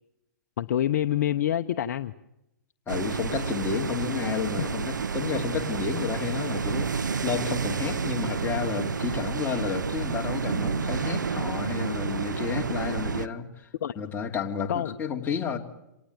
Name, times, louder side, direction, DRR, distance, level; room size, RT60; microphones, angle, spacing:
voice 1, 0.6-2.1 4.6-4.7 13.8-13.9 14.7-15.0, left 11 dB, 60° left, 9 dB, 0.9 m, -27 dB
voice 2, 2.9-13.7 14.0-15.6, left 6 dB, 20° left, 2 dB, 2.9 m, -31 dB
sound 1, 2.9-13.3, right 5 dB, 85° right, 0.8 m, -30 dB
27.5 x 19.0 x 9.1 m, 0.88 s
hypercardioid pair, 120°, 10 cm